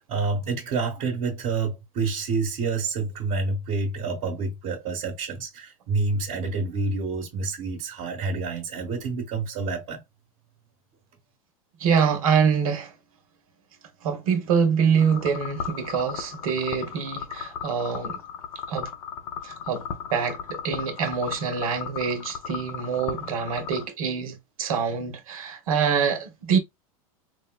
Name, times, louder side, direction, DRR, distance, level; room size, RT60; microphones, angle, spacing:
voice 1, 0.0-10.0, right 4 dB, 50° right, 1.3 m, -28 dB
voice 2, 11.8-12.9 14.0-18.2 18.7-18.9 19.4-19.9 20.1-26.6, right 6 dB, 75° right, 1.0 m, -25 dB
sound 1, 15.0-23.9, left 7 dB, 65° left, 0.7 m, -36 dB
4.8 x 2.1 x 2.2 m
hypercardioid pair, 105°, 18 cm